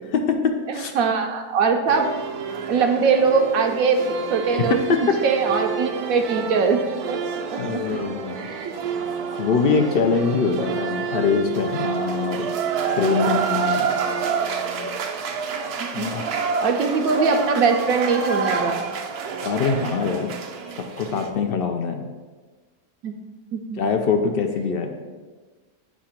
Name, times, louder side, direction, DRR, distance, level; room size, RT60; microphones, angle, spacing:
voice 1, 0.7-2.1 2.7-4.8 5.2-6.8 7.1-7.2 7.5-7.8 8.4-8.7 16.0-18.8 23.0-23.1 23.5-23.8, right 5 dB, 75° right, 4 dB, 1.0 m, -21 dB
sound 1, 1.9-21.3, right 6 dB, 90° right, 1.2 m, -28 dB
voice 2, 4.6-5.0 7.6-8.5 9.4-12.5 12.9-13.9 15.9-16.4 19.4-20.3 21.0-22.1 23.8-24.9, left 5 dB, 80° left, 5 dB, 0.5 m, -23 dB
8.3 x 2.8 x 5.8 m, 1.4 s
omnidirectional pair, 1.6 m